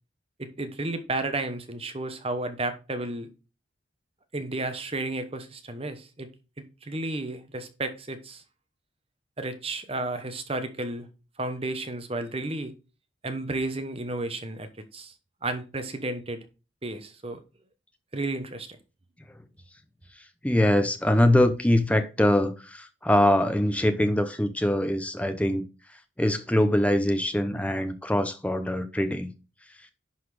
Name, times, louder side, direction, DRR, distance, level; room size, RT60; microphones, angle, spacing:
voice 1, 0.4-3.3 4.3-6.3 6.6-8.4 9.4-11.1 11.4-12.7 13.2-15.1 15.4-16.4 16.8-17.4 18.1-18.7, right 2 dB, 30° right, 1.0 m, -32 dB
voice 2, 20.4-25.6 26.2-29.3, left 1 dB, 5° left, 0.8 m, -23 dB
11.0 x 4.2 x 4.9 m
head